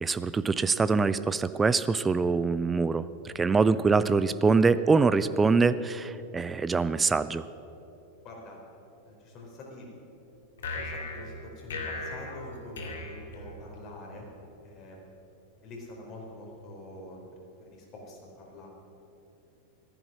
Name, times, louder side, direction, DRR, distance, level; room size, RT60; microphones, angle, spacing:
voice 1, 0.0-7.4, right 4 dB, 15° right, 14 dB, 0.5 m, -24 dB
voice 2, 8.2-8.6 9.0-9.9 10.7-14.3 14.6-15.0 15.6-17.2 17.6-18.7, left 2 dB, 35° left, -1 dB, 4.4 m, -45 dB
sound 1, 10.6-14.0, left 2 dB, 60° left, 2.3 m, -38 dB
15.0 x 14.0 x 6.1 m, 2.9 s
figure-of-eight pair, 90°, 0 cm